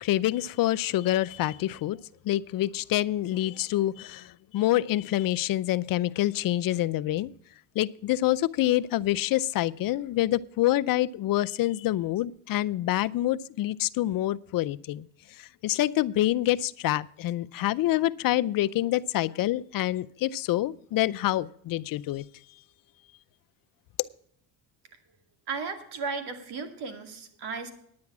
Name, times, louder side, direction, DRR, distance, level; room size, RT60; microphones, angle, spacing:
voice 1, 0.0-2.0 2.2-7.3 7.8-22.2, left 15 dB, 55° left, 0.6 m, -27 dB
voice 2, 25.5-27.7, right 4 dB, 70° right, 2.3 m, -35 dB
9.6 x 9.5 x 6.0 m
cardioid pair, 105°, 42 cm